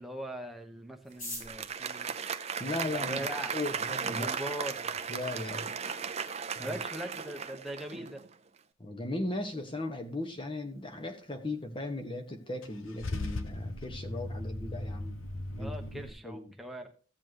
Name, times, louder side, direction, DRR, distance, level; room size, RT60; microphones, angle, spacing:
voice 1, 0.0-2.1 3.0-3.5 4.0-4.8 6.6-8.2 15.6-16.9, right 1 dB, ahead, 3 dB, 1.1 m, -40 dB
sound 1, 1.0-3.3 4.1-4.2 4.4-4.5 4.7-5.2 5.6-5.7 5.8-6.3 6.6-6.8 7.1-7.4, left 1 dB, 40° left, 5.4 m, -45 dB
Applause, 1.3-8.3, right 6 dB, 30° right, 0.6 m, -36 dB
voice 2, 2.6-3.2 3.5-4.3 5.1-5.7 6.6-6.8 8.8-15.2 15.5-16.5, left 2 dB, 25° left, 6 dB, 1.3 m, -37 dB
Car / Engine starting / Idling, 12.6-16.1, left 2 dB, 80° left, 0.9 m, -38 dB
15.5 x 7.3 x 3.0 m, 0.40 s
head